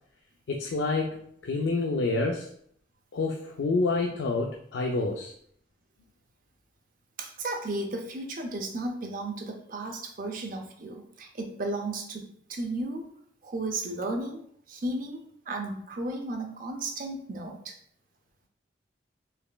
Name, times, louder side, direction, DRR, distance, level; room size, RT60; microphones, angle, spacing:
voice 1, 0.5-2.5 3.1-5.3, left 3 dB, 90° left, 1 dB, 0.4 m, -28 dB
voice 2, 7.2-13.1 13.4-17.8, right 2 dB, 50° right, 4 dB, 0.5 m, -34 dB
4.1 x 3.1 x 2.2 m, 0.65 s
head